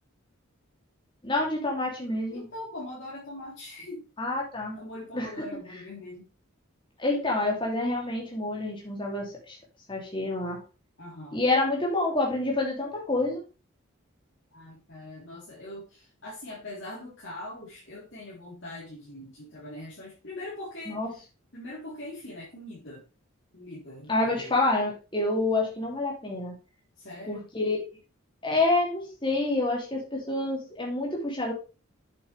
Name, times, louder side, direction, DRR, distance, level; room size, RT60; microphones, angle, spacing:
voice 1, 1.2-2.5 4.2-4.8 5.1-5.3 7.0-9.5 9.9-10.6 11.3-13.4 20.9-21.1 24.1-26.5 27.2-27.8 28.4-31.5, left 2 dB, 25° left, -2 dB, 3.0 m, -27 dB
voice 2, 2.3-4.0 4.7-6.3 11.0-11.4 14.5-21.2 21.5-23.0 23.5-24.6 27.0-27.5, left 1 dB, 60° left, -8 dB, 3.9 m, -42 dB
8.3 x 7.9 x 3.5 m, 0.32 s
head